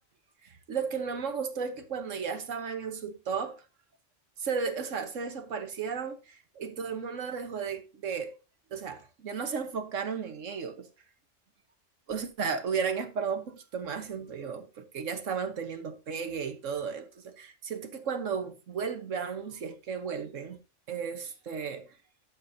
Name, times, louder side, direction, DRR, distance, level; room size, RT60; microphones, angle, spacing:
voice 1, 0.4-3.6 4.4-8.3 8.7-10.9 12.1-20.6 20.9-21.9, right 6 dB, 85° right, 1.5 m, -34 dB
11.5 x 7.3 x 2.7 m
omnidirectional pair, 1.3 m